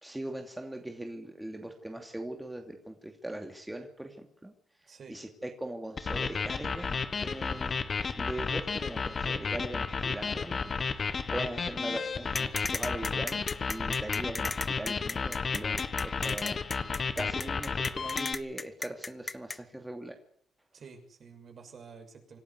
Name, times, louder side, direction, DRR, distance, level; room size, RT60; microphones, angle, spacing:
voice 1, 0.0-4.5 4.8-7.8 8.2-10.6 10.9-20.2, right 1 dB, 10° right, 4 dB, 2.9 m, -40 dB
voice 2, 4.9-5.2 20.7-22.4, right 5 dB, 50° right, 5 dB, 6.4 m, -50 dB
sound 1, 6.0-18.3, left 5 dB, 40° left, 1.7 m, -32 dB
sound 2, 12.3-19.6, left 3 dB, 25° left, 0.9 m, -35 dB
26.5 x 12.0 x 9.7 m, 0.62 s
cardioid pair, 90°, 0 cm